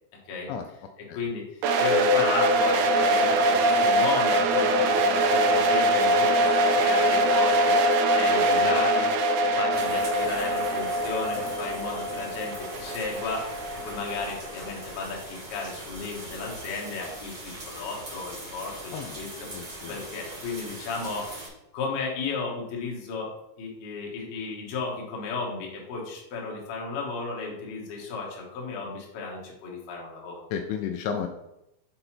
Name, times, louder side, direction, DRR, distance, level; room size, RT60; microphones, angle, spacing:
voice 1, 1.1-13.4 13.8-19.5 19.9-23.3 23.6-30.4, left 3 dB, 60° left, -2 dB, 2.9 m, -34 dB
sound 1, 1.6-14.5, right 1 dB, 85° right, 2.5 m, -23 dB
sound 2, 9.7-21.5, right 1 dB, 35° right, 1.6 m, -40 dB
voice 2, 18.9-20.0 30.5-31.3, left 7 dB, 85° left, 5 dB, 2.7 m, -33 dB
7.6 x 4.0 x 4.4 m, 0.88 s
omnidirectional pair, 5.9 m